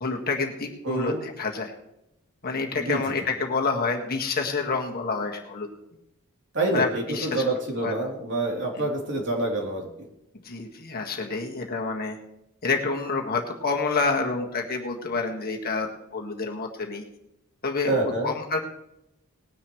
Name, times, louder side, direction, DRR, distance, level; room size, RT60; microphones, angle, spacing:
voice 1, 0.0-1.7 2.4-5.7 6.7-7.4 7.8-7.9 10.4-12.2 12.6-17.0 17.6-18.6, left 4 dB, 45° left, 1 dB, 1.7 m, -28 dB
voice 2, 0.8-1.2 2.7-3.0 6.5-9.9 17.8-18.3, right 2 dB, 55° right, -2 dB, 3.3 m, -27 dB
19.5 x 9.9 x 3.2 m, 0.86 s
head